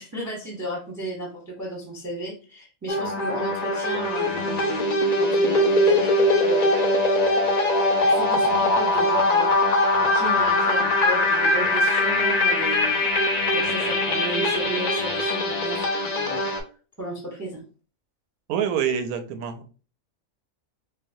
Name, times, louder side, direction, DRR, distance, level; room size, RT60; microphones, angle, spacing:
voice 1, 0.0-6.9 8.0-9.5 10.0-13.0 13.5-16.7 17.0-17.6, right 1 dB, 20° right, 0.6 m, -34 dB
sound 1, 2.9-16.6, left 1 dB, 65° left, 0.4 m, -21 dB
voice 2, 18.5-19.7, right 8 dB, 90° right, 1.0 m, -26 dB
4.6 x 2.0 x 2.6 m
omnidirectional pair, 1.5 m